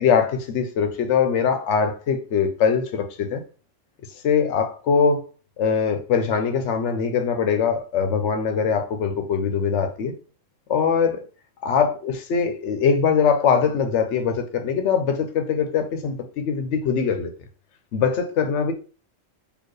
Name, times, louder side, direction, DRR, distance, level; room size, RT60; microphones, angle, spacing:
voice 1, 0.0-3.4 4.2-5.2 5.6-10.1 10.7-11.2 11.6-17.3 17.9-18.7, left 6 dB, 70° left, 1.0 m, -22 dB
4.4 x 2.9 x 3.1 m
omnidirectional pair, 1.3 m